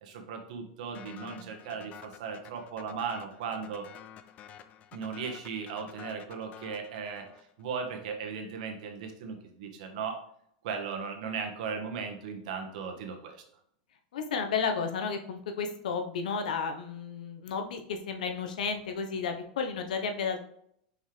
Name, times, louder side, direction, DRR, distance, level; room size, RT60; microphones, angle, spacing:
voice 1, 0.0-3.9 4.9-7.3 7.6-10.2 10.6-13.4, right 6 dB, 70° right, 4 dB, 1.5 m, -37 dB
sound 1, 0.9-7.6, left 9 dB, 35° left, 0.5 m, -50 dB
voice 2, 14.1-20.4, left 5 dB, 85° left, 6 dB, 1.1 m, -32 dB
6.1 x 5.3 x 3.4 m, 0.70 s
supercardioid pair, 125°, 4 cm